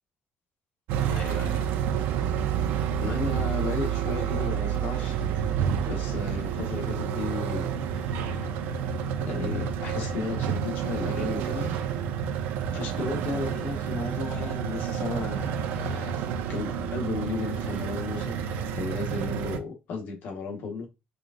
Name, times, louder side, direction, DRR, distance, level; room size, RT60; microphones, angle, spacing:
sound 1, 0.9-19.6, right 8 dB, 90° right, 0.5 m, -29 dB
voice 1, 1.0-1.7 3.0-5.2 5.9-8.5 9.2-11.8 12.7-16.1 16.5-18.3 18.7-20.9, left 4 dB, 65° left, 1.2 m, -34 dB
4.8 x 2.5 x 2.5 m
cardioid pair, 145°, 3 cm